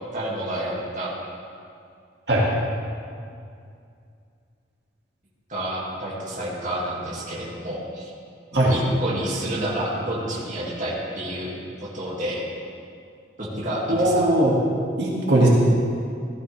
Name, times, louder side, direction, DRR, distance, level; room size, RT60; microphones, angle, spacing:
voice 1, 0.1-1.1 5.5-8.1 8.6-12.4 13.4-14.3, right 1 dB, 40° right, -6 dB, 2.4 m, -29 dB
voice 2, 13.9-14.6 15.0-15.5, right 1 dB, 60° right, -5 dB, 2.4 m, -19 dB
17.0 x 13.0 x 3.5 m, 2.4 s
head